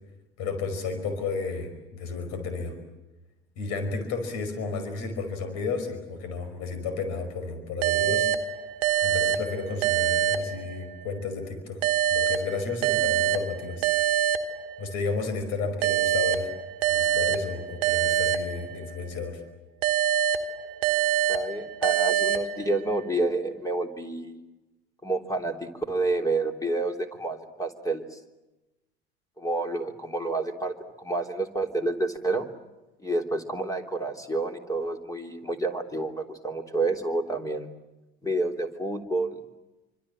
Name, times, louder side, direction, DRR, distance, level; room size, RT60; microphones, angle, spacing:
voice 1, 0.4-2.7 3.6-8.3 9.0-11.8 12.1-13.9 14.8-16.5 16.8-19.4, left 4 dB, 60° left, 8 dB, 5.3 m, -32 dB
sound 1, 7.8-11.2 11.8-15.1 15.8-19.2 19.8-23.1, right 9 dB, 75° right, 1.3 m, -26 dB
voice 2, 21.3-24.4 25.0-28.2 29.4-32.5 33.0-37.7 38.2-39.4, right 2 dB, 10° left, 4 dB, 3.5 m, -29 dB
27.0 x 25.5 x 7.6 m, 1.0 s
hypercardioid pair, 70°, 31 cm